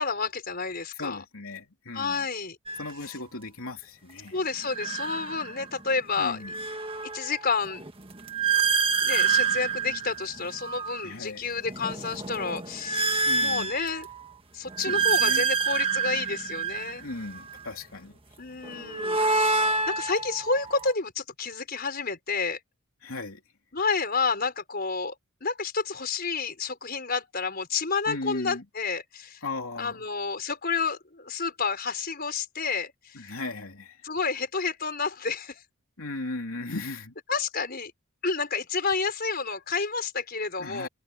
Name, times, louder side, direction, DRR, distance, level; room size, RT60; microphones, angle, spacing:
voice 1, 0.0-1.2 1.9-2.6 3.0-3.1 4.3-6.4 7.1-7.8 9.0-14.1 14.5-17.0 18.4-22.6 23.7-25.1 25.4-29.4 29.8-33.4 34.0-35.6 37.3-37.9 38.2-40.9, left 4 dB, 45° left, 4.8 m, -30 dB
voice 2, 0.9-2.3 2.8-4.4 6.2-6.5 11.0-11.4 13.3-13.7 14.9-15.4 17.0-18.2 23.0-23.4 28.1-28.6 29.4-30.0 33.1-34.1 36.0-37.1 40.6-40.9, left 2 dB, 80° left, 3.1 m, -37 dB
sound 1, 2.7-2.9 4.6-5.8 6.2-11.1 11.6-14.2 14.7-17.6 18.6-20.9, right 5 dB, 25° right, 1.5 m, -28 dB
open air
head